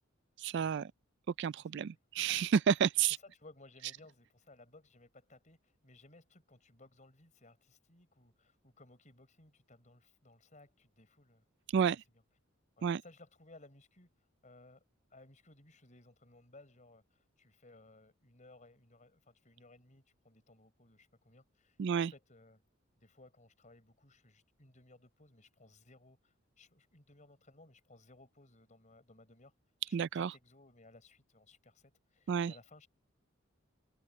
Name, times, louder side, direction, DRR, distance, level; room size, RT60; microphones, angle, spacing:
voice 1, 0.4-0.9 1.4-3.2 11.7-12.0 12.8-13.0 21.8-22.1 29.9-30.3 32.3-32.5, right 7 dB, 60° right, 0.3 m, -30 dB
voice 2, 1.6-2.0 3.1-11.4 12.1-12.2 12.8-14.1 14.4-14.8 15.1-22.6 23.0-29.5 29.9-32.9, left 2 dB, 35° left, 5.2 m, -60 dB
head